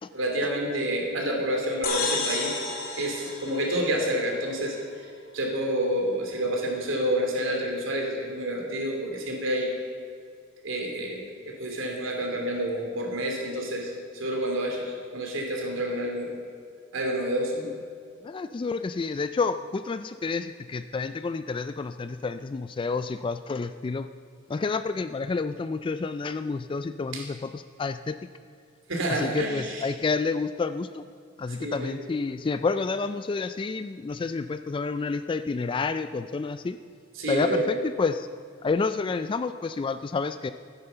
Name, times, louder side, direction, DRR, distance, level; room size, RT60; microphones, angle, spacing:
voice 1, 0.1-2.5 3.0-4.8 5.3-9.7 10.6-16.3 16.9-17.6 27.1-27.2 28.9-29.9 31.6-31.9 37.2-37.7, right 1 dB, 80° right, 0 dB, 2.8 m, -28 dB
sound 1, 1.8-4.4, left 4 dB, 50° left, 2.3 m, -32 dB
voice 2, 18.2-24.1 24.5-28.2 29.1-31.0 31.4-36.8 37.3-38.3 38.6-40.5, left 4 dB, 25° left, 11 dB, 0.3 m, -29 dB
13.5 x 9.9 x 6.8 m, 2.2 s
head